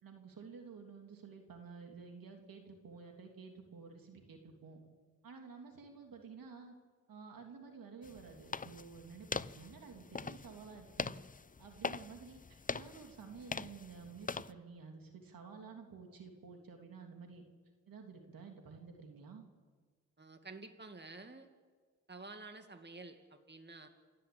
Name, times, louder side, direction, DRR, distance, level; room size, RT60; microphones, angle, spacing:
voice 1, 0.0-4.8 5.2-6.8 7.1-11.1 11.6-17.4 17.9-19.5, right 5 dB, 85° right, 3 dB, 3.1 m, -52 dB
sound 1, 8.0-14.5, left 4 dB, 25° left, 0.6 m, -43 dB
voice 2, 20.2-21.5 22.1-23.9, right 3 dB, 30° right, 7 dB, 2.3 m, -50 dB
28.5 x 13.0 x 8.8 m, 1.5 s
cardioid pair, 55°, 34 cm